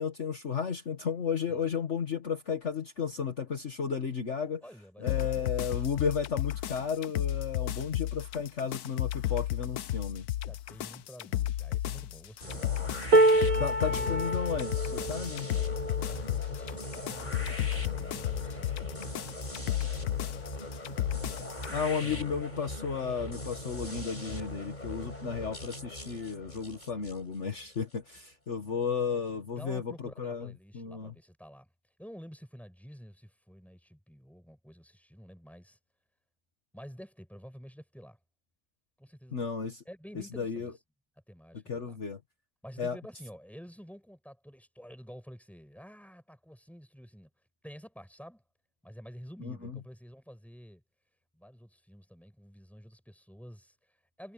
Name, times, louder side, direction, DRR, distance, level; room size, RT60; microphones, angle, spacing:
voice 1, 0.0-4.6 5.0-10.3 13.6-15.5 21.7-31.1 39.3-39.8 40.3-40.7 41.7-42.2 42.8-43.0 49.4-49.8, left 6 dB, 50° left, 1.8 m, -33 dB
voice 2, 4.6-6.0 10.3-12.9 13.6-14.4 16.0-20.3 21.9-22.4 29.6-31.7 32.0-35.8 36.7-38.2 39.0-39.5 39.9-40.7 41.3-42.0 42.6-47.3 47.6-48.4 48.8-50.8 51.3-54.3, equal, ahead, 7.1 m, -50 dB
sound 1, 5.1-21.7, left 13 dB, 85° left, 1.3 m, -33 dB
sound 2, 12.4-28.2, left 1 dB, 30° left, 5.5 m, -41 dB
sound 3, 13.1-19.3 19.9-20.1 20.3-21.1 22.1-22.2, right 2 dB, 60° right, 2.1 m, -29 dB
omnidirectional pair, 1.6 m